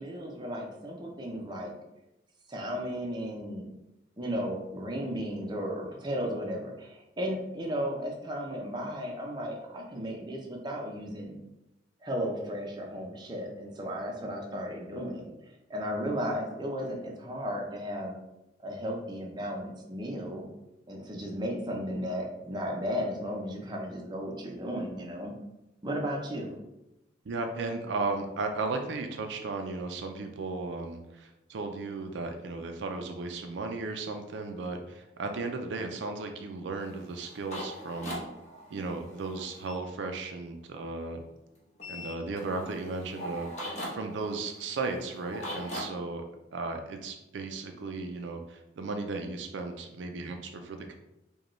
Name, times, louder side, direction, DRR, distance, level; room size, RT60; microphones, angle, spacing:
voice 1, 0.0-1.7 2.5-3.7 4.2-11.4 12.0-18.1 18.6-20.5 20.9-25.3 25.8-26.6, equal, 25° right, 0 dB, 0.5 m, -35 dB
voice 2, 27.3-38.2 38.7-41.2 41.9-46.2 46.5-51.0, right 3 dB, 70° right, 5 dB, 0.4 m, -35 dB
sound 1, 36.8-39.8 41.8-45.8, equal, 35° left, 1.0 m, -41 dB
5.0 x 2.2 x 3.1 m, 0.93 s
head